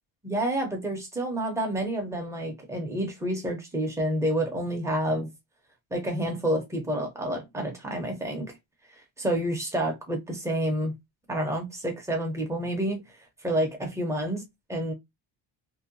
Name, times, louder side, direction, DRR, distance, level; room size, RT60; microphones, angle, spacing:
voice 1, 0.2-5.3 5.9-8.6 9.2-10.9 11.3-13.0 13.4-14.4 14.7-14.9, right 1 dB, 5° right, 0.5 m, -29 dB
2.7 x 2.1 x 2.5 m
cardioid pair, 170°, 44 cm